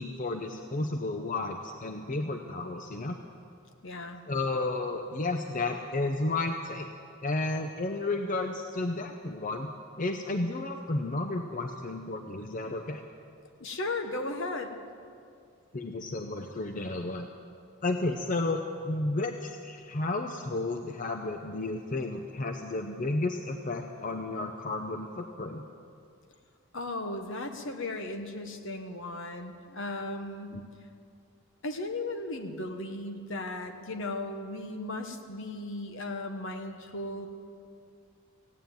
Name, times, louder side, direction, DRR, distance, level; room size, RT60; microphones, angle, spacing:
voice 1, 0.0-3.2 4.3-6.9 7.2-9.7 10.0-13.0 15.7-17.3 17.8-25.6 30.5-30.6, left 2 dB, 35° left, 5 dB, 0.6 m, -32 dB
voice 2, 3.8-4.2 13.6-14.7 26.7-30.6 31.6-37.3, left 2 dB, 60° left, 6 dB, 1.2 m, -36 dB
16.0 x 9.4 x 9.0 m, 2.4 s
head